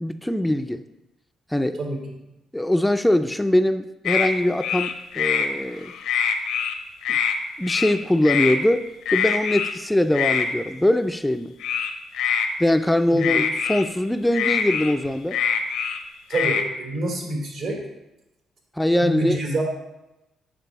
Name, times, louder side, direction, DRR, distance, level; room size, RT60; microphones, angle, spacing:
voice 1, 0.0-0.8 1.5-1.8 2.5-5.9 7.1-7.2 7.6-11.5 12.6-15.4 18.8-19.4, left 1 dB, 5° left, 8 dB, 0.4 m, -22 dB
sound 1, 4.1-4.3 4.6-5.5 5.9-6.7 7.0-7.4 7.6-7.9 8.3-8.6 9.1-9.7 10.1-10.5 11.6-12.5 13.2-13.8 14.3-16.0 16.3-16.6, left 7 dB, 85° left, 0.8 m, -24 dB
voice 2, 16.3-17.8 19.0-19.6, right 2 dB, 75° right, -2 dB, 3.5 m, -26 dB
9.5 x 6.8 x 4.0 m, 0.94 s
cardioid pair, 90°, 0 cm